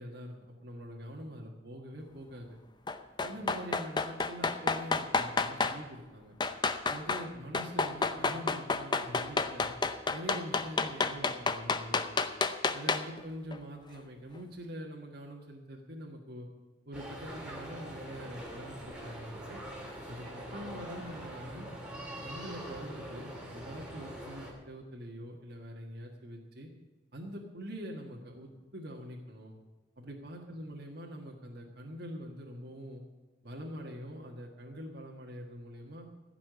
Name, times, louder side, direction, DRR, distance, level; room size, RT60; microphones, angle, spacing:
voice 1, 0.0-2.6 3.2-6.3 6.9-9.8 10.1-12.2 12.7-16.5 16.8-19.6 20.1-21.7 22.2-26.7 27.1-29.6 30.0-33.0 33.4-36.1, equal, 55° right, -1 dB, 1.6 m, -44 dB
sound 1, 2.9-5.8 6.4-7.3 7.5-13.2 13.5-13.6, left 4 dB, 25° left, 0.6 m, -30 dB
sound 2, 16.9-24.5, right 1 dB, 5° right, 2.7 m, -43 dB
15.5 x 6.0 x 9.3 m, 1.2 s
head